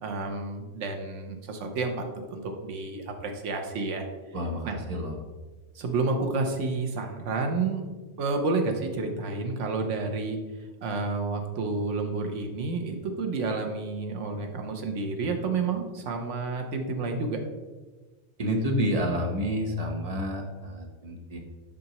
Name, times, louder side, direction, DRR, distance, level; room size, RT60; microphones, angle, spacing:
voice 1, 0.0-4.1 4.6-4.8 5.7-7.8 8.2-10.4 10.8-17.4, right 3 dB, 75° right, 4 dB, 1.2 m, -30 dB
voice 2, 4.3-5.2 18.4-21.4, equal, 35° right, 1 dB, 0.9 m, -29 dB
7.5 x 5.3 x 2.9 m, 1.3 s
omnidirectional pair, 1.2 m